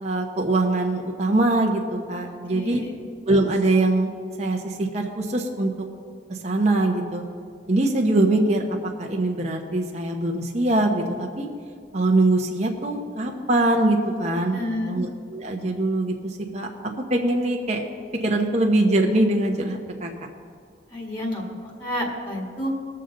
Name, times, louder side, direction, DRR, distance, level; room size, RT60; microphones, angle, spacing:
voice 1, 0.0-2.8 3.3-4.1 4.4-5.9 6.3-7.2 7.7-8.6 9.0-11.5 11.9-16.7 17.1-17.8 18.2-20.1, right 2 dB, 35° right, 1 dB, 0.9 m, -23 dB
voice 2, 2.5-3.0 14.5-14.9 20.9-21.4 21.8-22.7, left 1 dB, 25° left, -1 dB, 1.8 m, -29 dB
20.0 x 6.7 x 3.9 m, 2.1 s
head